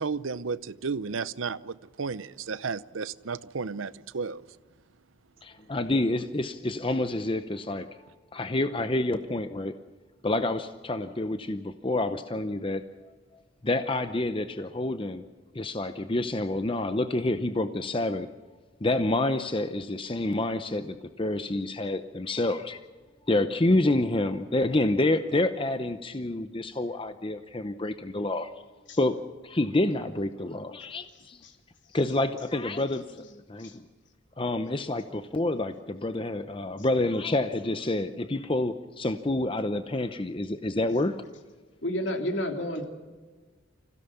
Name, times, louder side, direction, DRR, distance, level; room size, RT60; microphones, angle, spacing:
voice 1, 0.0-4.4, right 5 dB, 85° right, 0.7 m, -33 dB
voice 2, 5.4-7.9 8.3-9.7 10.2-12.8 13.6-15.2 15.5-18.3 18.8-22.8 23.3-28.5 29.0-29.2 29.4-31.4 31.9-33.8 34.4-41.2, left 2 dB, 25° left, 0.8 m, -28 dB
voice 3, 41.8-42.9, left 1 dB, 65° left, 3.1 m, -30 dB
26.5 x 16.5 x 7.1 m
head